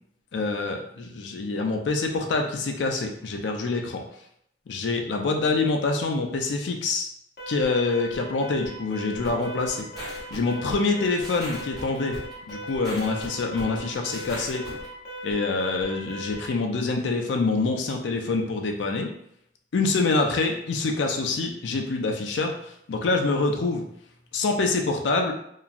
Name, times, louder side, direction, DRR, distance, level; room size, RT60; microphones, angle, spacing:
voice 1, 0.3-4.0 4.7-7.1 7.5-9.9 10.3-12.2 12.5-14.6 15.2-19.1 19.7-23.9 24.3-25.3, left 3 dB, 85° left, 3 dB, 0.4 m, -26 dB
Alarm, 7.4-16.6, equal, 60° left, 0.7 m, -39 dB
sound 1, 9.2-14.9, equal, ahead, 1.1 m, -39 dB
2.9 x 2.3 x 2.5 m, 0.73 s
head